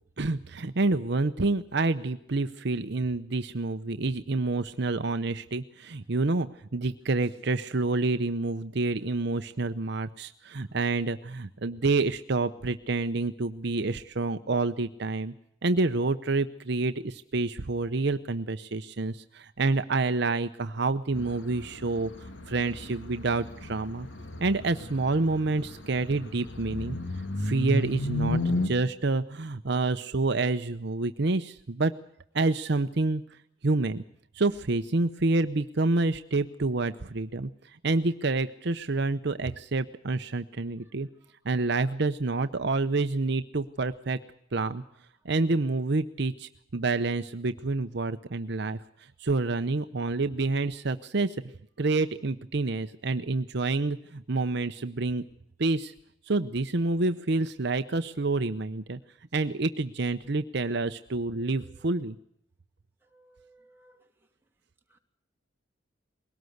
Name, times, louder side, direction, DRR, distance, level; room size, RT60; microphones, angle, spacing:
voice 1, 0.2-6.5 6.7-15.3 15.6-22.1 22.5-24.1 24.4-27.0 27.4-31.9 32.3-33.2 33.6-34.0 34.3-41.1 41.4-44.2 44.5-44.8 45.2-48.8 49.2-51.4 51.8-55.2 55.6-55.9 56.3-59.0 59.3-62.2, right 3 dB, 60° right, 10 dB, 0.8 m, -28 dB
sound 1, 21.1-28.7, left 1 dB, 70° left, 2.5 m, -33 dB
voice 2, 63.1-64.0 64.9-65.0, right 1 dB, 10° right, 1 dB, 2.8 m, -59 dB
21.5 x 18.0 x 7.9 m, 0.73 s
head